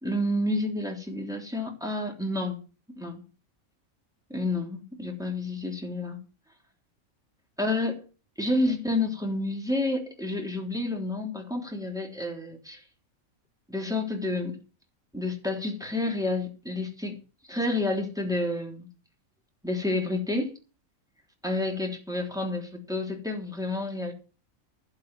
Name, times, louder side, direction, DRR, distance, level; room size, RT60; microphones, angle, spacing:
voice 1, 0.0-2.6 3.0-3.2 4.3-6.2 7.6-8.1 8.4-12.8 13.7-14.6 15.1-17.2 17.5-18.9 19.6-20.6 21.4-24.1, left 2 dB, ahead, 3.3 m, -29 dB
11.5 x 6.8 x 9.0 m
omnidirectional pair, 1.4 m